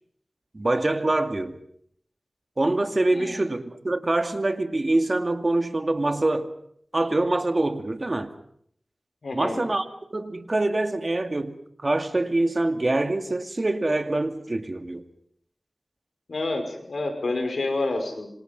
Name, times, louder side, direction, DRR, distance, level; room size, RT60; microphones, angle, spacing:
voice 1, 0.5-1.5 2.6-6.5 6.9-8.3 9.3-11.6 11.8-15.0, right 2 dB, 40° right, 2.2 m, -25 dB
voice 2, 9.2-9.7 16.3-18.3, left 2 dB, 85° left, 5.8 m, -28 dB
27.0 x 26.0 x 5.4 m
wide cardioid pair, 65°, 0 cm